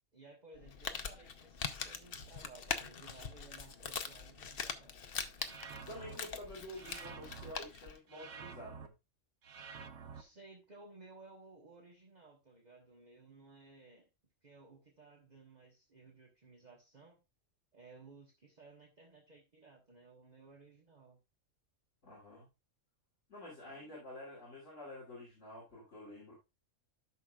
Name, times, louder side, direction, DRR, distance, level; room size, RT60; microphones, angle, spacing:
voice 1, 0.1-5.0 10.1-14.1 14.4-17.2 17.7-21.2 23.6-24.1, right 3 dB, 35° right, 2 dB, 1.3 m, -58 dB
Crumpling crinkling, 0.6-8.0, left 6 dB, 50° left, 0.9 m, -43 dB
sound 1, 5.4-6.2 6.7-7.5 8.1-8.9 9.4-10.2, right 6 dB, 65° right, 1.1 m, -49 dB
voice 2, 5.8-8.9 9.6-9.7 10.0-10.3 22.0-22.5 23.3-26.3, left 1 dB, 70° left, -6 dB, 3.4 m, -49 dB
12.5 x 6.0 x 2.3 m, 0.25 s
omnidirectional pair, 1.3 m